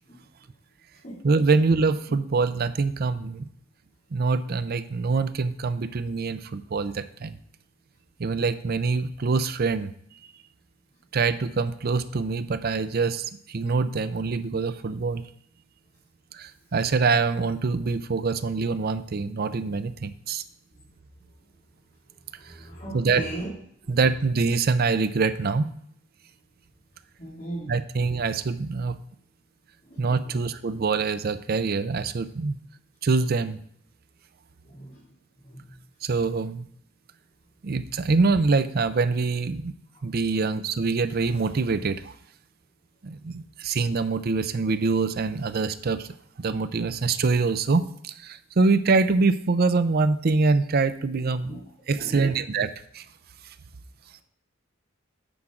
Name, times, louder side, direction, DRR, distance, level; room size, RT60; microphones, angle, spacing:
voice 1, 1.2-3.5 4.1-7.4 8.2-9.9 11.1-15.2 16.3-20.4 22.9-23.2 23.9-25.7 27.6-29.0 30.0-32.6 33.0-33.6 36.0-36.7 37.6-39.7 40.0-42.1 43.0-46.1 46.4-53.0, right 4 dB, 50° right, 13 dB, 0.5 m, -25 dB
voice 2, 22.6-23.5 23.9-24.0 27.2-27.7 29.9-30.0 34.8-35.0 51.5-51.6 51.9-52.4, right 1 dB, 40° left, -8 dB, 2.6 m, -36 dB
9.9 x 6.0 x 3.8 m, 0.67 s
head